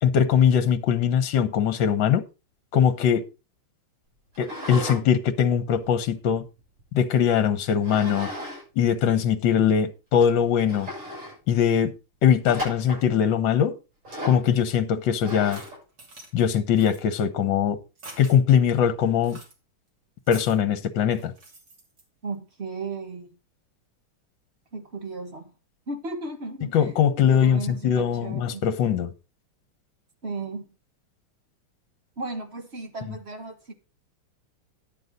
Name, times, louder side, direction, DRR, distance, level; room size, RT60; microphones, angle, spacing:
voice 1, 0.0-2.3 2.7-3.2 4.4-6.5 6.9-8.3 8.8-10.9 11.5-11.9 12.2-13.8 14.2-15.6 16.3-17.8 18.2-19.4 20.3-21.3 26.7-29.1, left 8 dB, 65° left, 1.6 m, -21 dB
sound 1, 4.3-5.0 5.4-6.8 7.8-8.6 8.9-9.0 9.7-9.8 10.2-10.3 10.7-11.4 12.4-13.1 14.0-14.5 15.2-15.8, equal, 80° right, 8.0 m, -35 dB
sound 2, 15.3-16.3 16.8-17.0 18.0-18.4 19.2-19.5 20.2-20.6 21.1-22.0, right 2 dB, 50° right, 3.4 m, -45 dB
voice 2, 22.2-23.3 24.7-25.5 25.9-26.9 27.3-28.6 30.2-30.7 32.2-33.7, right 3 dB, 35° right, 1.4 m, -35 dB
11.0 x 7.9 x 4.0 m
omnidirectional pair, 2.4 m